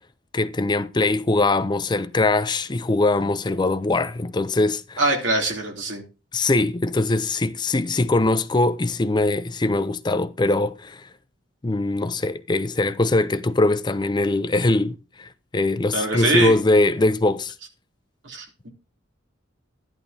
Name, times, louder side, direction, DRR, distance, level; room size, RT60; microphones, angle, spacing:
voice 1, 0.3-5.0 6.3-11.1 11.6-17.5, left 2 dB, 25° left, 0.5 m, -22 dB
voice 2, 5.0-6.0 15.9-16.5 18.2-18.7, right 1 dB, 75° right, 3.1 m, -23 dB
13.5 x 11.0 x 2.8 m
head